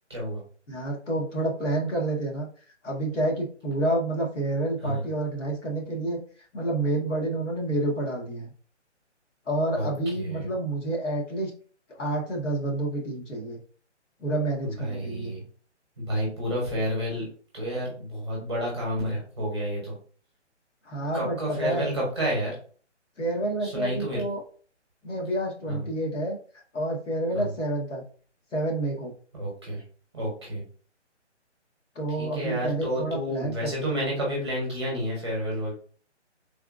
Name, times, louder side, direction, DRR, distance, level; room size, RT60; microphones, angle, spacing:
voice 1, 0.1-0.4 4.8-5.0 9.7-10.5 14.6-15.4 16.0-17.3 17.5-19.9 21.1-22.5 23.6-24.2 25.7-25.8 27.3-27.5 29.3-29.8 30.1-30.6 32.2-35.7, equal, 25° right, -4 dB, 1.0 m, -30 dB
voice 2, 0.7-2.5 2.8-6.2 6.5-8.5 9.5-11.5 12.0-13.6 14.2-15.3 20.8-21.9 23.2-24.4 25.0-26.4 26.7-28.0 28.5-29.1 31.9-33.8, right 1 dB, 85° left, -1 dB, 1.5 m, -29 dB
3.4 x 2.4 x 2.4 m, 0.43 s
hypercardioid pair, 180°, 36 cm